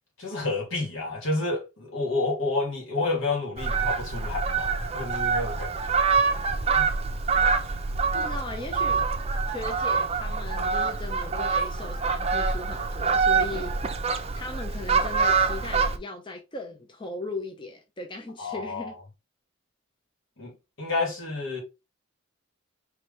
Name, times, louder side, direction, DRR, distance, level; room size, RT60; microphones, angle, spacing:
voice 1, 0.2-6.0 6.7-6.9 18.4-18.9 20.4-21.6, left 3 dB, 70° left, 2.4 m, -30 dB
Fowl, 3.6-16.0, right 5 dB, 30° right, 0.6 m, -25 dB
voice 2, 8.1-9.0 9.5-13.7 14.3-19.0, left 2 dB, 25° left, 0.6 m, -37 dB
4.9 x 3.1 x 3.2 m
head